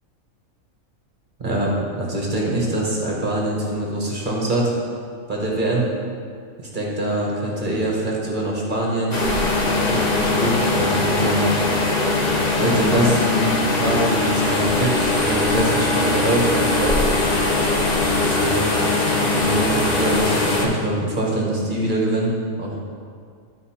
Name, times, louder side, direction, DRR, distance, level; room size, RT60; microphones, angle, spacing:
voice 1, 1.4-4.7 5.3-5.9 6.6-9.2 9.6-11.5 12.6-17.0 18.2-18.7 19.3-22.3 22.6-22.8, right 1 dB, 40° right, -3 dB, 1.5 m, -24 dB
sound 1, 9.1-20.7, left 2 dB, 35° left, 1.0 m, -20 dB
12.0 x 4.6 x 4.4 m, 2.2 s
omnidirectional pair, 1.4 m